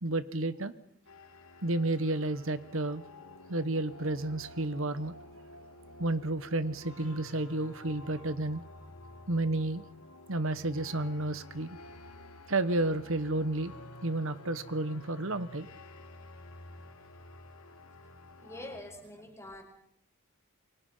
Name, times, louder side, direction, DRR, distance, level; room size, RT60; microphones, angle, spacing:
voice 1, 0.0-0.7 1.6-3.0 3.5-5.1 6.0-8.6 9.3-9.8 10.3-11.8 12.5-13.8 14.0-15.7, right 2 dB, 60° right, 13 dB, 1.2 m, -31 dB
sound 1, 1.0-18.8, left 2 dB, 85° left, 3.0 m, -51 dB
voice 2, 18.4-19.6, left 1 dB, 15° left, 4 dB, 4.8 m, -45 dB
29.5 x 24.0 x 5.6 m, 0.70 s
head